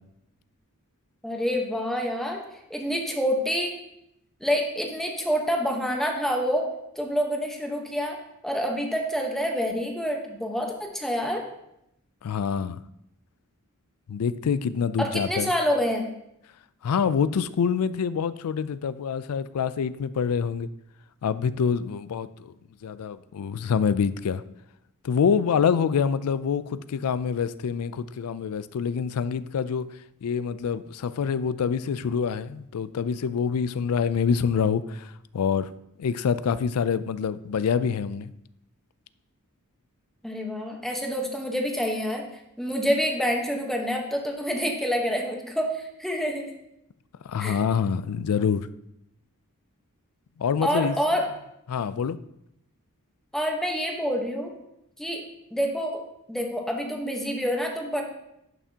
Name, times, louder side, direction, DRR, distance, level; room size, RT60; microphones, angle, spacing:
voice 1, 1.2-2.4 2.7-3.7 4.4-6.7 7.0-8.2 8.4-11.4 15.0-16.0 40.2-42.2 42.6-46.5 47.4-47.6 50.6-51.3 53.3-54.5 55.0-55.2 55.5-56.0 56.3-58.0, equal, ahead, 1 dB, 1.1 m, -27 dB
voice 2, 12.2-12.8 14.1-15.5 16.8-20.7 21.2-22.5 22.8-24.4 25.0-29.9 30.2-35.7 36.0-38.3 47.2-48.7 50.4-50.9 51.7-52.2, left 6 dB, 75° left, 15 dB, 0.4 m, -26 dB
11.0 x 5.8 x 2.8 m, 0.81 s
head